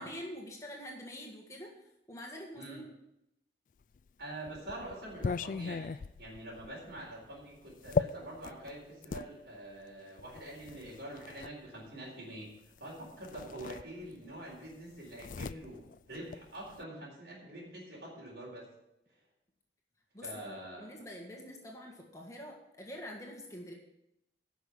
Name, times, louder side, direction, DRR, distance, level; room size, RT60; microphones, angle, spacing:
voice 1, 0.0-1.7 2.1-2.9 20.1-23.7, equal, 15° left, 0 dB, 1.7 m, -45 dB
sound 1, 4.0-9.3 10.2-11.5 12.8-12.9 13.2-14.3 14.6-16.8, left 5 dB, 45° left, 0.3 m, -38 dB
voice 2, 4.2-5.9 6.2-12.5 12.8-15.8 16.1-18.7 20.2-20.9, right 1 dB, 75° right, -3 dB, 4.1 m, -45 dB
10.5 x 6.3 x 8.3 m, 0.85 s
head